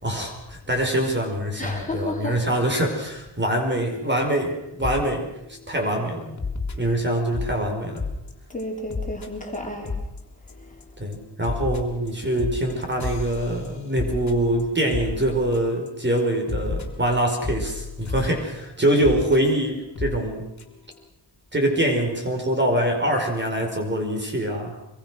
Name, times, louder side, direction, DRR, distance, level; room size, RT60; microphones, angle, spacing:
voice 1, 0.0-6.4 6.8-8.1 11.0-20.4 21.5-24.8, right 1 dB, 25° right, 3 dB, 5.2 m, -24 dB
voice 2, 1.6-2.4 8.5-10.0, left 1 dB, 20° left, 0 dB, 4.9 m, -31 dB
sound 1, 4.8-5.0 5.4-5.7 6.4-7.6 8.0-8.3 8.6-8.7 8.9-9.3 9.5-9.6 9.8-10.2 10.5-10.8 11.1-15.9 16.2-16.3 16.5-18.3 19.0-19.4 20.0-20.2 20.6-20.7 20.9-21.0, left 4 dB, 40° left, 3.3 m, -31 dB
25.0 x 22.5 x 6.3 m, 0.92 s
wide cardioid pair, 110°, 43 cm